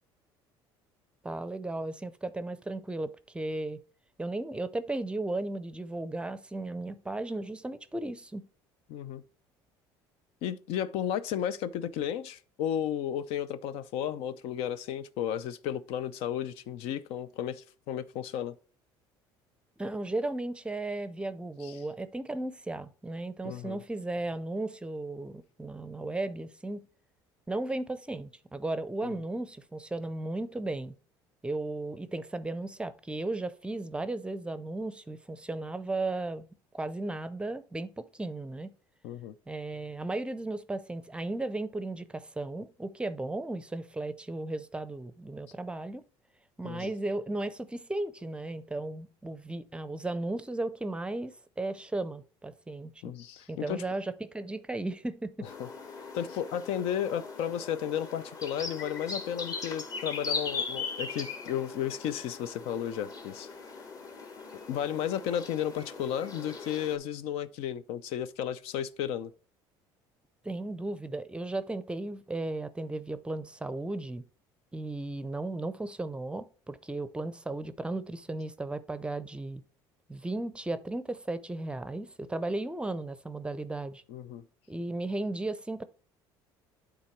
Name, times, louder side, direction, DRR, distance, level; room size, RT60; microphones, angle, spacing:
voice 1, 1.2-3.8 4.2-8.5 19.8-26.9 27.5-30.9 31.4-36.5 36.7-38.7 39.5-46.0 46.6-52.9 53.5-55.5 70.4-74.2 74.7-79.6 80.1-84.0 84.7-85.9, right 2 dB, 10° right, 0.5 m, -35 dB
voice 2, 8.9-9.2 10.4-18.6 21.6-21.8 23.4-23.8 29.0-29.1 39.0-39.3 46.6-46.9 53.0-53.8 55.6-55.7 56.1-63.5 64.7-69.3 84.1-84.4, left 10 dB, 75° left, 0.5 m, -33 dB
sound 1, 55.5-67.0, left 4 dB, 35° left, 1.4 m, -39 dB
8.7 x 3.8 x 4.4 m
cardioid pair, 110°, 10 cm